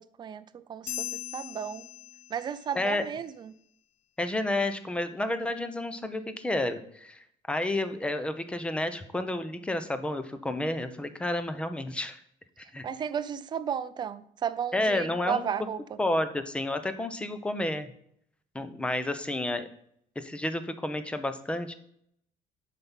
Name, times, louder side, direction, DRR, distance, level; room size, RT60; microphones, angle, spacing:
voice 1, 0.0-1.9 2.3-3.5 12.8-15.8, right 8 dB, 30° right, 14 dB, 0.6 m, -34 dB
sound 1, 0.9-2.7, left 11 dB, 50° left, 0.9 m, -39 dB
voice 2, 4.2-12.2 12.6-12.9 14.7-15.5 16.0-17.9 18.5-19.7 20.2-21.7, left 1 dB, 10° left, 10 dB, 0.8 m, -30 dB
7.5 x 5.9 x 7.3 m, 0.68 s
cardioid pair, 145°, 14 cm